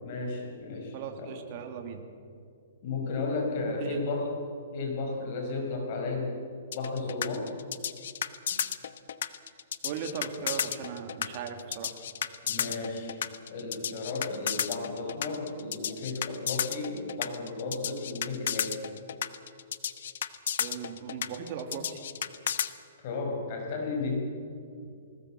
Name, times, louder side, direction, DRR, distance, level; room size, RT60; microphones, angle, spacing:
voice 1, 0.0-1.4 2.8-4.3 4.7-6.3 6.7-7.5 12.4-13.2 13.5-18.8 23.0-24.3, left 3 dB, 40° left, 2 dB, 5.4 m, -33 dB
voice 2, 0.9-2.0 3.8-4.0 9.8-11.9 20.6-22.0, right 7 dB, 40° right, 4 dB, 2.5 m, -38 dB
sound 1, 6.7-22.7, left 9 dB, 65° left, 1.1 m, -33 dB
20.5 x 19.0 x 7.6 m, 2.4 s
hypercardioid pair, 155°, 0 cm